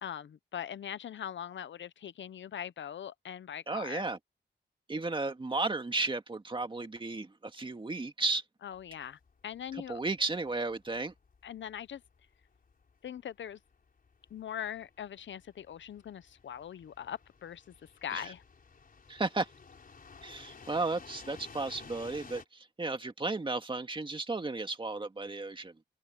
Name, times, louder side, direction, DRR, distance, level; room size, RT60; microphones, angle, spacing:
voice 1, 0.0-4.0 8.6-10.0 11.4-12.0 13.0-13.6 14.3-17.6 18.0-18.4, left 9 dB, 85° left, 0.8 m, -41 dB
voice 2, 3.7-4.2 4.9-8.4 9.7-11.1 18.1-18.3 19.1-19.5 20.2-25.7, right 3 dB, 25° right, 2.0 m, -34 dB
sound 1, 8.7-22.5, left 5 dB, 50° left, 4.7 m, -54 dB
open air
wide cardioid pair, 125°, 19 cm